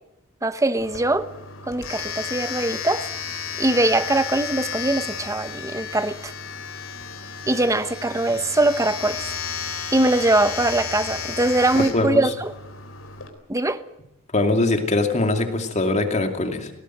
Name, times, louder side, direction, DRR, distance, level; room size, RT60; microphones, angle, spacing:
voice 1, 0.4-1.3 1.6-3.1 3.6-6.3 7.5-9.3 9.9-12.5 13.5-13.8, right 2 dB, 15° right, 1.0 m, -22 dB
Domestic sounds home sounds, 0.8-13.3, left 6 dB, 70° left, 3.5 m, -33 dB
voice 2, 11.7-12.2 14.3-16.7, left 2 dB, 35° left, 2.5 m, -22 dB
19.0 x 17.5 x 9.1 m
head